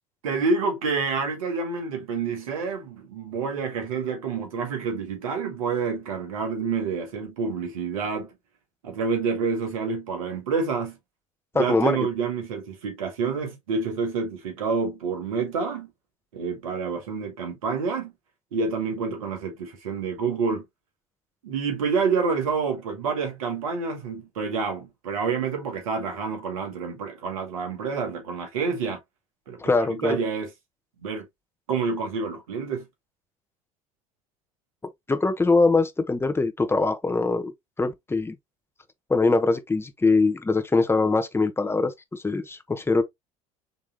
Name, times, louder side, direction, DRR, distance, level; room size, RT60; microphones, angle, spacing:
voice 1, 0.2-8.3 8.8-11.0 11.6-15.9 16.3-18.1 18.5-20.6 21.4-29.0 29.5-30.5 31.0-31.3 31.7-32.8, right 5 dB, 80° right, 2.0 m, -28 dB
voice 2, 11.5-12.0 29.6-30.2 35.1-37.5 37.8-38.4 39.1-43.0, left 3 dB, 15° left, 1.1 m, -22 dB
5.1 x 3.5 x 2.9 m
hypercardioid pair, 70°, 17 cm